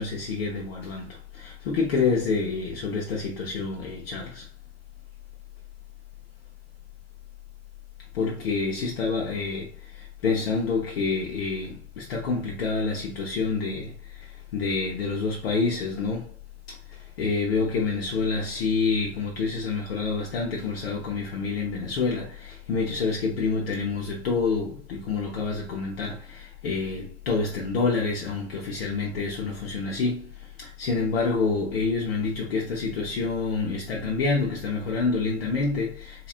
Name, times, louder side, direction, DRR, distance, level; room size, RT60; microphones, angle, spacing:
voice 1, 0.0-4.5 8.1-16.3 16.7-36.3, left 4 dB, 60° left, 0.8 m, -28 dB
3.9 x 2.9 x 2.5 m
figure-of-eight pair, 90°, 35 cm